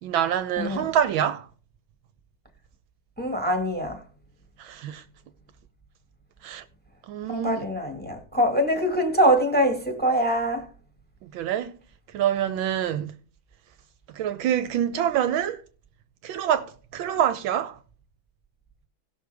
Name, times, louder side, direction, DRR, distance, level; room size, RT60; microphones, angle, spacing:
voice 1, 0.0-1.5 4.6-5.0 6.4-6.6 7.1-7.6 11.2-11.8 12.1-13.1 14.1-15.6 16.2-17.8, right 10 dB, 75° right, 1.4 m, -26 dB
voice 2, 0.6-0.9 3.2-4.0 7.3-10.7, equal, 5° left, 1.4 m, -23 dB
17.5 x 6.4 x 3.4 m
omnidirectional pair, 2.3 m